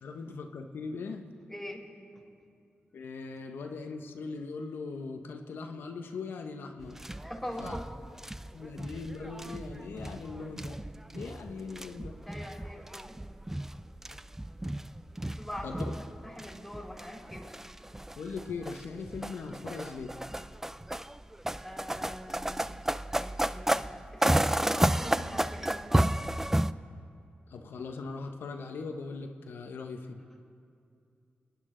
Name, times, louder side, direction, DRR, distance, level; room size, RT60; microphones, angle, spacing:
voice 1, 0.0-1.3 2.9-7.0 7.6-7.7 8.5-10.8 11.1-12.2 15.6-15.9 18.2-20.1 27.5-30.2, left 4 dB, 90° left, 4 dB, 0.9 m, -40 dB
voice 2, 1.5-1.8 7.1-7.9 12.2-13.2 15.3-15.9 16.2-17.5 21.6-22.8 23.1-23.8 24.1-26.1, equal, 5° left, -2 dB, 3.8 m, -42 dB
sound 1, 6.8-26.7, right 1 dB, 10° right, 0.4 m, -33 dB
29.0 x 9.9 x 3.8 m, 2.4 s
cardioid pair, 55°, 4 cm